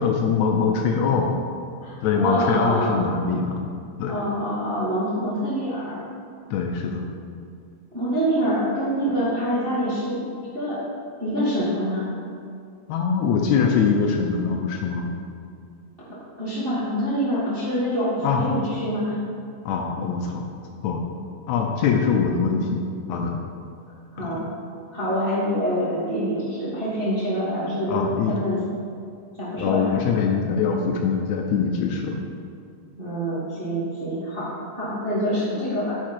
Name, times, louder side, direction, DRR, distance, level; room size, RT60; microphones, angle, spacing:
voice 1, 0.0-1.3 2.0-3.6 4.0-4.1 6.5-7.1 12.9-15.1 18.2-18.5 19.7-20.5 20.8-21.0 21.5-22.8 23.1-23.4 24.2-24.5 27.9-28.4 29.6-32.2, left 6 dB, 75° left, 2 dB, 1.8 m, -23 dB
voice 2, 1.8-3.0 4.0-6.0 7.9-10.3 10.5-10.8 11.2-12.1 16.4-19.2 23.9-24.4 24.9-28.0 28.3-28.6 29.4-29.9 33.0-36.0, equal, 25° right, -9 dB, 1.2 m, -26 dB
9.4 x 5.9 x 4.5 m, 2.3 s
omnidirectional pair, 3.5 m